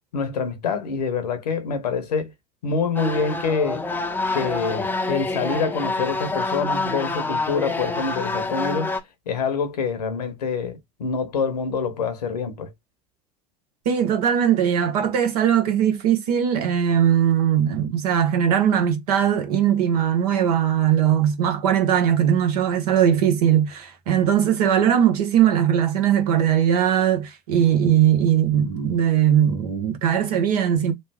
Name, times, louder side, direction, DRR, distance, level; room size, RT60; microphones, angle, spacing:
voice 1, 0.1-2.3 2.6-3.8 4.3-9.0 9.3-12.7, left 5 dB, 75° left, 0.8 m, -26 dB
sound 1, 2.9-9.0, left 3 dB, 10° left, 0.5 m, -27 dB
voice 2, 13.8-30.9, right 9 dB, 70° right, 0.9 m, -20 dB
3.1 x 2.1 x 3.4 m
figure-of-eight pair, 70°, 20 cm